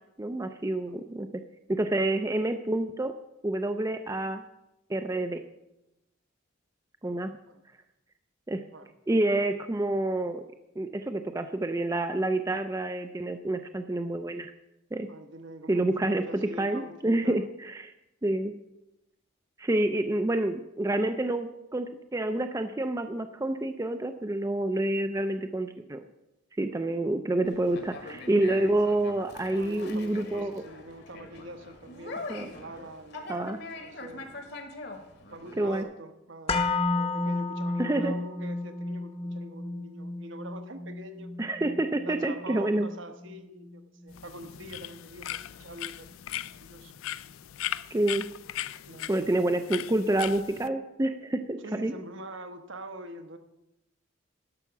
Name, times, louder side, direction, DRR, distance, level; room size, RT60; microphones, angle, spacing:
voice 1, 0.2-1.3 1.7-3.1 3.4-4.4 4.9-5.4 7.0-7.4 8.5-8.7 9.1-10.4 10.8-14.5 14.9-15.1 15.7-16.2 16.6-17.9 18.2-18.6 19.6-21.9 22.1-26.0 26.6-30.6 32.3-32.5 33.3-33.6 35.6-35.9 37.8-38.1 41.4-42.9 47.9-48.3 49.1-51.9, right 1 dB, 15° right, 8 dB, 0.4 m, -28 dB
voice 2, 15.1-17.4 26.7-26.9 29.5-34.5 35.3-41.3 42.0-46.1 46.5-46.9 48.9-49.3 51.6-53.4, right 1 dB, 65° right, 7 dB, 1.1 m, -45 dB
Conversation, 27.4-35.8, left 2 dB, 55° left, 1.4 m, -43 dB
sound 1, 36.5-44.6 44.9-45.0, left 3 dB, 30° left, 0.9 m, -33 dB
sound 2, 44.1-50.7, left 12 dB, 85° left, 0.4 m, -38 dB
11.5 x 5.8 x 7.1 m, 0.92 s
head